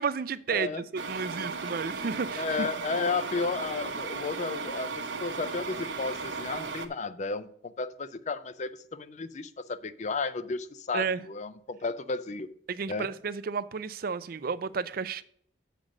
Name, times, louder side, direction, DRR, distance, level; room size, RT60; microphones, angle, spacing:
voice 1, 0.0-2.7 10.9-11.2 12.7-15.2, right 5 dB, 50° right, 0.4 m, -32 dB
voice 2, 0.5-0.8 2.4-12.5 12.9-13.1, left 4 dB, 40° left, 0.5 m, -33 dB
sound 1, 0.9-6.9, right 4 dB, 85° right, 0.9 m, -36 dB
7.3 x 5.1 x 6.3 m
head